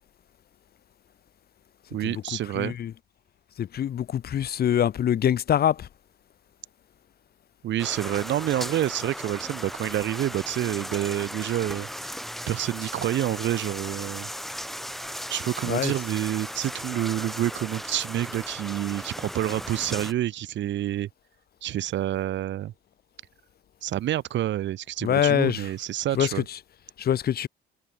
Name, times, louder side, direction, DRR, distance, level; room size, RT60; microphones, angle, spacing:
voice 1, 1.9-2.7 7.6-12.1 12.5-14.3 15.3-21.1 21.6-22.7 23.8-26.5, right 13 dB, 65° right, 0.7 m, -28 dB
voice 2, 2.6-2.9 3.6-5.9 15.7-15.9 25.0-25.6 26.2-26.3 27.0-27.5, left 10 dB, 50° left, 0.7 m, -24 dB
sound 1, 7.8-20.1, equal, ahead, 1.6 m, -37 dB
cardioid pair, 90°, 20 cm